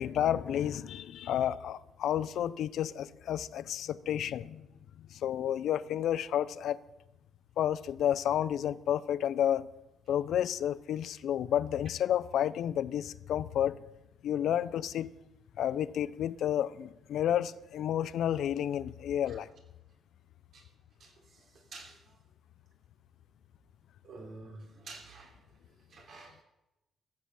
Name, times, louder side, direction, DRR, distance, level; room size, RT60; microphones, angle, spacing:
voice 1, 0.0-4.7 5.1-6.8 7.6-9.7 10.1-13.8 14.2-15.1 15.6-19.5, left 10 dB, 75° left, 0.5 m, -31 dB
voice 2, 21.0-21.4 21.7-22.1 24.0-25.3 25.9-26.4, right 3 dB, 60° right, 3.5 m, -49 dB
15.0 x 7.6 x 7.0 m
cardioid pair, 90°, 0 cm